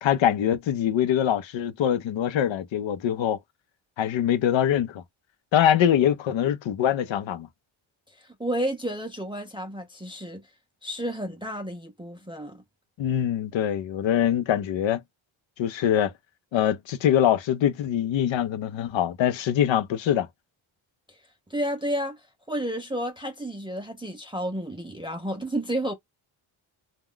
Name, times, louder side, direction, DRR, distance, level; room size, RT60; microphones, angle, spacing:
voice 1, 0.0-3.4 4.0-5.0 5.5-7.5 13.0-15.0 15.6-16.1 16.5-20.3, left 10 dB, 70° left, 0.6 m, -23 dB
voice 2, 8.1-10.4 10.8-12.6 21.1-21.2 21.5-25.9, right 1 dB, 10° right, 0.4 m, -31 dB
2.3 x 2.2 x 3.5 m
cardioid pair, 100°, 48 cm